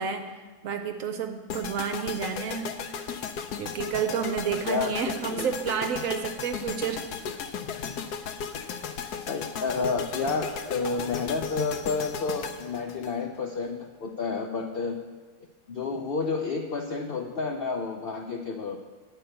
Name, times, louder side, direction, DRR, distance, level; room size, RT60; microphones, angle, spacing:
voice 1, 0.0-2.7 3.6-7.0, right 7 dB, 65° right, 6 dB, 1.0 m, -30 dB
sound 1, 1.5-13.7, left 7 dB, 80° left, 1.2 m, -36 dB
voice 2, 9.3-15.0 15.7-18.8, left 4 dB, 65° left, 4 dB, 0.5 m, -30 dB
9.9 x 4.6 x 7.7 m, 1.4 s
omnidirectional pair, 1.6 m